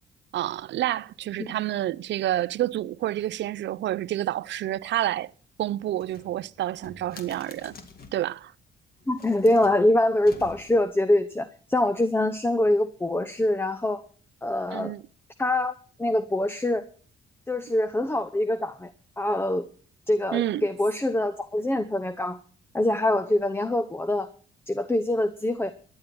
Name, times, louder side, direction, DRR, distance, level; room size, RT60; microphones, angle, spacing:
voice 1, 0.3-5.3 5.6-7.8 8.1-8.5 14.7-15.0 20.3-20.7, right 13 dB, 65° right, 0.5 m, -29 dB
cabinet draw, 5.9-8.3 9.0-10.9, left 4 dB, 50° left, 2.2 m, -48 dB
voice 2, 9.1-14.0 14.4-14.9 15.4-15.7 16.0-16.9 17.5-19.7 20.1-22.4 22.7-24.3 24.7-25.7, left 1 dB, 10° left, 0.8 m, -24 dB
14.5 x 10.0 x 6.0 m
cardioid pair, 90°, 20 cm